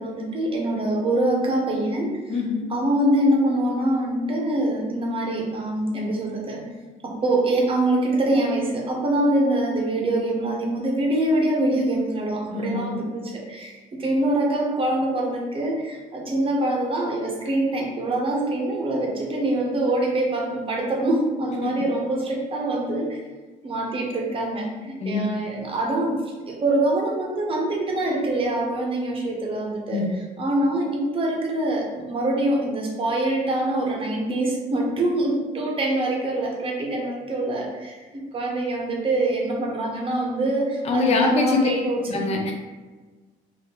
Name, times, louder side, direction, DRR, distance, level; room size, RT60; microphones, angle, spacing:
voice 1, 0.0-2.2 2.7-6.6 7.0-23.2 23.6-26.2 26.5-30.0 30.4-42.3, right 1 dB, 30° right, -1 dB, 0.8 m, -24 dB
voice 2, 2.3-2.7 12.5-13.0 21.6-21.7 25.0-25.4 29.9-30.2 40.8-41.7 42.1-42.5, left 3 dB, 40° left, 1 dB, 0.5 m, -24 dB
2.6 x 2.5 x 3.5 m, 1.3 s
cardioid pair, 110°, 17 cm